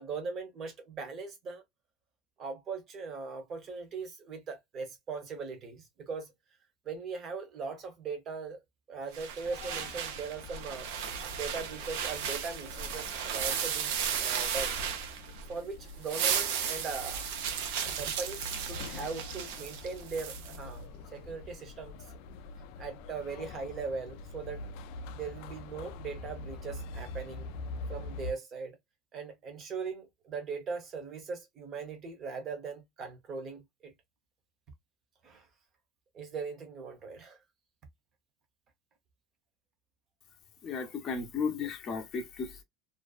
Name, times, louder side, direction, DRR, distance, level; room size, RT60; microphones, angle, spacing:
voice 1, 0.0-1.6 2.4-6.3 6.8-8.6 8.9-10.9 11.3-14.8 15.5-17.3 17.8-20.8 21.1-22.1 22.8-24.7 25.1-27.5 27.9-28.8 29.1-33.9 35.2-35.5 36.1-37.4, right 4 dB, 30° right, 0.8 m, -40 dB
sound 1, 9.1-15.5 15.9-20.6, right 8 dB, 80° right, 0.6 m, -35 dB
sound 2, 9.4-28.3, left 2 dB, 65° left, 0.3 m, -45 dB
voice 2, 40.6-42.6, left 5 dB, 30° left, 0.6 m, -34 dB
2.5 x 2.1 x 2.3 m
cardioid pair, 170°, 0 cm